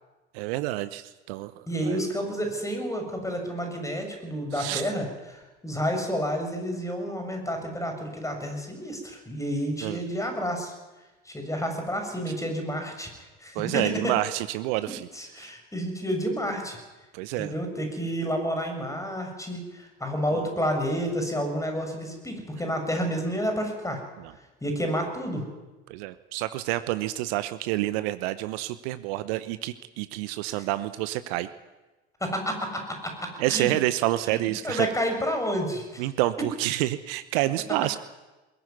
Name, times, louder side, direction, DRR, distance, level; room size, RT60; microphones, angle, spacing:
voice 1, 0.3-1.5 1.8-2.0 4.5-4.9 9.8-10.0 13.5-15.1 15.4-15.5 17.1-17.5 20.3-20.4 24.2-24.3 25.9-31.5 33.4-34.9 36.0-38.0, right 16 dB, 60° right, 14 dB, 1.0 m, -28 dB
voice 2, 1.7-10.7 11.3-14.1 15.1-16.8 17.4-24.0 24.6-25.5 30.5-30.6 32.2-33.7 34.3-36.1, equal, 10° left, 5 dB, 7.1 m, -30 dB
21.0 x 16.5 x 9.7 m, 1.1 s
figure-of-eight pair, 65°, 33 cm